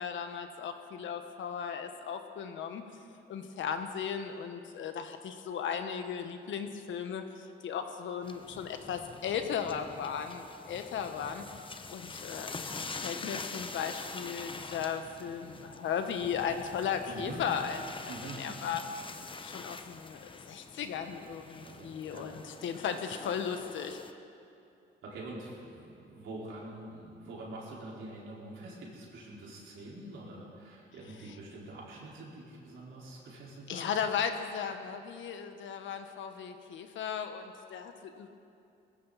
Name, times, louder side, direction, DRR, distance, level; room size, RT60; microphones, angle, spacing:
voice 1, 0.0-2.8 3.3-18.8 19.4-24.0 33.7-38.3, left 7 dB, 75° left, 7 dB, 1.4 m, -36 dB
sound 1, 8.2-24.1, left 4 dB, 25° left, 0.9 m, -45 dB
voice 2, 17.1-17.4 18.1-18.5 19.3-19.5 21.6-22.4 22.7-22.8 25.0-33.9, right 2 dB, 75° right, -5 dB, 4.7 m, -45 dB
20.5 x 16.5 x 4.2 m, 2.7 s
cardioid pair, 90°, 20 cm